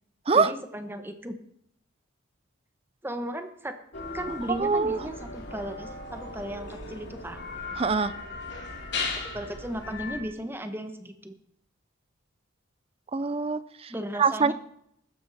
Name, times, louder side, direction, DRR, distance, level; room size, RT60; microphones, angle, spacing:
voice 1, 0.3-1.4 3.0-3.7 4.1-7.5 9.3-11.4 13.9-14.5, equal, 10° right, 7 dB, 1.2 m, -36 dB
sound 1, 3.9-10.2, left 3 dB, 55° left, 2.9 m, -37 dB
voice 2, 4.6-5.0 7.8-8.1 13.1-13.9 14.2-14.5, right 4 dB, 30° right, 15 dB, 0.5 m, -24 dB
15.0 x 12.5 x 4.2 m, 0.73 s
head